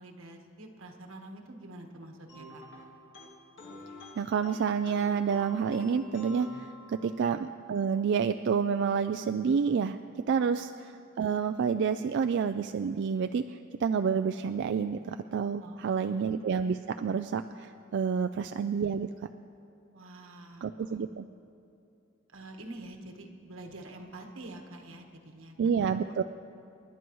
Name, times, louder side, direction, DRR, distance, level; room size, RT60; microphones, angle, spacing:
voice 1, 0.0-2.6 7.0-7.2 15.6-16.3 18.3-18.5 19.9-21.0 22.3-26.2, right 1 dB, 85° right, 3 dB, 1.4 m, -47 dB
sound 1, 2.3-7.4, equal, 65° left, 1.9 m, -48 dB
voice 2, 4.2-19.1 20.6-21.2 25.6-26.2, right 6 dB, 60° right, 8 dB, 0.3 m, -29 dB
29.0 x 11.0 x 3.1 m, 2.7 s
head